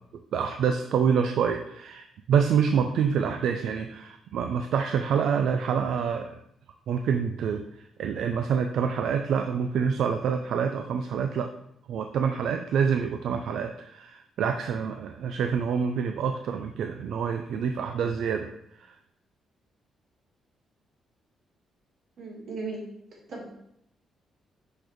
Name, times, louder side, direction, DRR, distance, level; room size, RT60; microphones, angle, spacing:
voice 1, 0.3-6.4 6.9-11.5 11.9-18.5 18.8-18.9, right 7 dB, 65° right, 6 dB, 0.3 m, -27 dB
voice 2, 22.2-22.8 23.3-23.5, right 3 dB, 45° right, -2 dB, 1.6 m, -36 dB
6.2 x 5.0 x 3.0 m, 0.76 s
cardioid pair, 180°, 0 cm